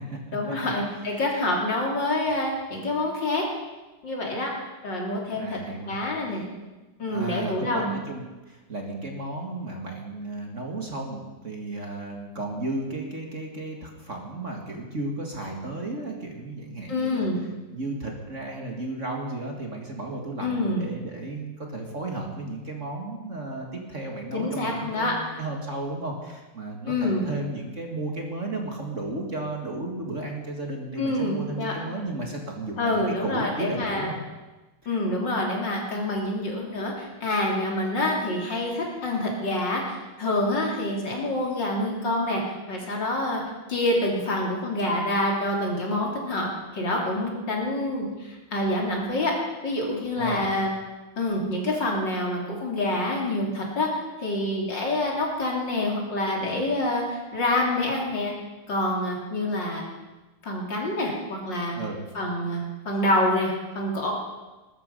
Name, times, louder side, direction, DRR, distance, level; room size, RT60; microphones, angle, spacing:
voice 1, 0.3-3.5 4.0-4.5 4.8-5.6 5.9-6.4 7.0-7.9 16.9-17.4 20.4-20.8 24.3-25.2 26.9-27.2 31.0-31.7 32.8-34.1 34.9-39.8 40.2-42.4 42.7-43.4 43.7-46.5 46.7-49.4 49.6-50.7 51.2-58.3 58.7-59.8 60.4-61.8 62.1-64.1, left 1 dB, 55° left, -1 dB, 3.7 m, -27 dB
voice 2, 5.3-6.4 7.1-17.3 17.7-34.2 34.8-35.4 50.2-50.5 61.8-62.0, right 2 dB, 35° right, 1 dB, 2.2 m, -34 dB
20.0 x 13.0 x 5.4 m, 1.2 s
omnidirectional pair, 2.4 m